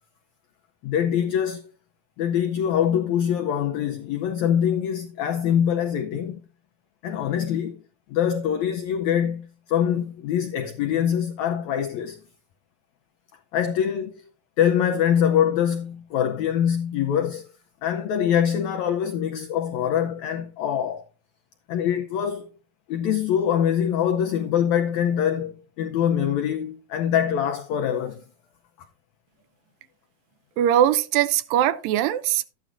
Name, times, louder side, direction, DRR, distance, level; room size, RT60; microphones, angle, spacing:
voice 1, 0.8-1.7 2.2-6.4 7.0-7.8 8.1-12.2 13.5-14.2 14.6-17.4 17.8-21.0 21.7-22.5 22.9-28.2, left 9 dB, 90° left, 1.6 m, -24 dB
voice 2, 30.6-32.5, right 11 dB, 80° right, 2.3 m, -21 dB
12.5 x 9.2 x 2.5 m
omnidirectional pair, 4.1 m